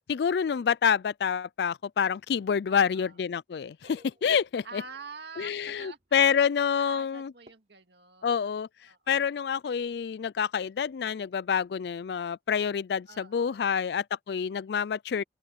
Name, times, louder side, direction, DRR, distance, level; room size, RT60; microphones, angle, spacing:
voice 1, 0.1-4.8 5.4-7.3 8.2-8.7 9.1-15.2, left 7 dB, 65° left, 0.3 m, -27 dB
voice 2, 2.7-3.2 4.6-6.3 6.8-8.5 8.9-9.4 13.1-13.8, right 4 dB, 70° right, 2.3 m, -47 dB
sound 1, 3.8-5.4 5.7-6.1 7.5-7.6, right 1 dB, 40° right, 4.3 m, -59 dB
open air
head